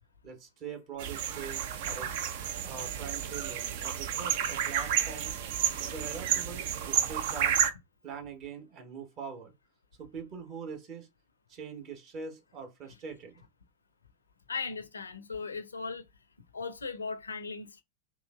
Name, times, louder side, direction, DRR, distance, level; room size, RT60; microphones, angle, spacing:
voice 1, 0.2-2.1 2.6-5.4 5.8-7.6 8.0-9.5 10.0-11.1 11.5-13.4, right 6 dB, 35° right, 1.0 m, -43 dB
sound 1, 1.0-7.7, right 9 dB, 50° right, 0.4 m, -31 dB
voice 2, 14.5-16.1 16.5-17.8, left 4 dB, 75° left, 0.4 m, -37 dB
3.6 x 2.8 x 2.3 m
figure-of-eight pair, 90°, 0 cm